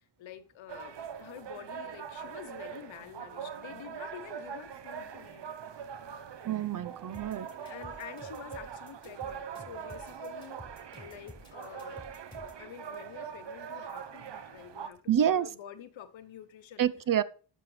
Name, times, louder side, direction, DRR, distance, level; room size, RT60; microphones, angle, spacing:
voice 1, 0.0-5.4 7.6-10.6 10.9-12.0 12.6-16.8, left 10 dB, 90° left, 0.9 m, -48 dB
sound 1, 0.7-14.9, right 7 dB, 65° right, 0.9 m, -43 dB
voice 2, 6.4-7.5 15.1-15.5 16.8-17.2, right 10 dB, 45° right, 0.6 m, -27 dB
sound 2, 7.1-12.6, left 2 dB, 10° left, 4.5 m, -51 dB
11.5 x 7.1 x 3.2 m
cardioid pair, 85°, 45 cm